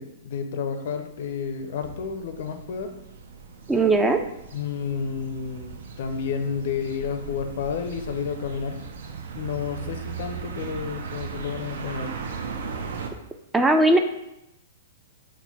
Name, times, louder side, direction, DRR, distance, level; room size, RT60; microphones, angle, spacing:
voice 1, 0.0-3.0 4.5-5.7 6.0-8.8 9.4-12.1, left 6 dB, 65° left, 7 dB, 0.4 m, -31 dB
sound 1, 1.1-13.1, right 5 dB, 70° right, 0.4 m, -37 dB
voice 2, 3.7-4.2 13.5-14.0, right 2 dB, 10° right, 6 dB, 0.3 m, -18 dB
4.3 x 2.1 x 4.2 m, 0.85 s
hypercardioid pair, 120°, 0 cm